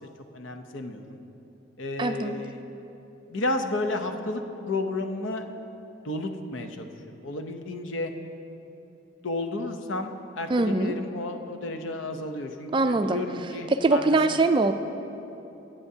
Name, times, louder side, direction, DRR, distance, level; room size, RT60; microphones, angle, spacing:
voice 1, 0.0-1.2 1.8-2.6 3.3-5.5 6.0-8.1 9.2-14.0 14.3-14.4, left 2 dB, 80° left, 6 dB, 0.8 m, -32 dB
voice 2, 2.0-2.4 10.5-10.9 12.7-13.2 13.8-14.7, right 3 dB, 25° right, 8 dB, 0.3 m, -22 dB
19.0 x 8.7 x 2.8 m, 3.0 s
head